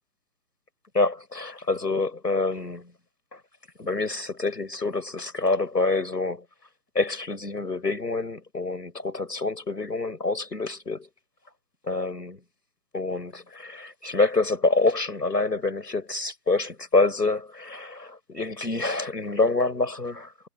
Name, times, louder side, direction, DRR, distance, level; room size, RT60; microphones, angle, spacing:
voice 1, 0.9-2.9 3.3-3.4 3.8-6.5 7.0-11.1 11.8-12.4 12.9-20.3, left 3 dB, 85° left, 7.0 m, -26 dB
figure-of-eight pair, 140°, 48 cm